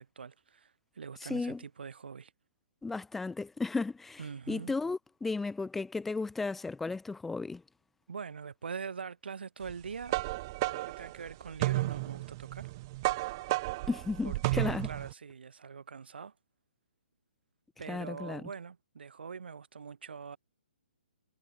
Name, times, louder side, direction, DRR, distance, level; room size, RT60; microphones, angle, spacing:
voice 1, 0.0-2.3 4.2-4.7 8.1-10.2 10.6-12.7 14.2-16.3 17.8-20.4, right 6 dB, 70° right, 7.5 m, -43 dB
voice 2, 1.2-1.6 2.8-4.2 4.5-7.6 13.9-14.9 17.9-18.4, left 3 dB, 5° left, 0.7 m, -34 dB
sound 1, 9.7-15.1, right 20 dB, 20° right, 0.9 m, -33 dB
hypercardioid pair, 175°, 6 cm